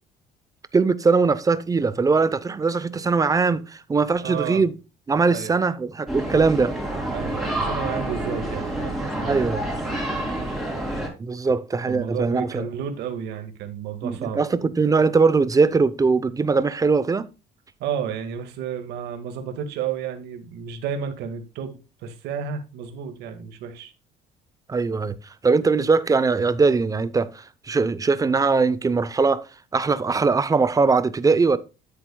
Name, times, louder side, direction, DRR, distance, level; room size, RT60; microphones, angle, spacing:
voice 1, 0.7-4.7 5.1-6.7 9.2-9.6 11.2-12.7 14.0-17.3 24.7-25.1 25.4-29.4 29.7-31.6, right 4 dB, 20° right, 0.7 m, -21 dB
voice 2, 4.2-4.6 5.3-5.6 7.1-10.7 11.9-14.4 17.8-23.9, right 7 dB, 85° right, 1.8 m, -32 dB
sound 1, 6.1-11.1, right 1 dB, ahead, 3.5 m, -28 dB
10.0 x 7.8 x 2.3 m
cardioid pair, 110°, 17 cm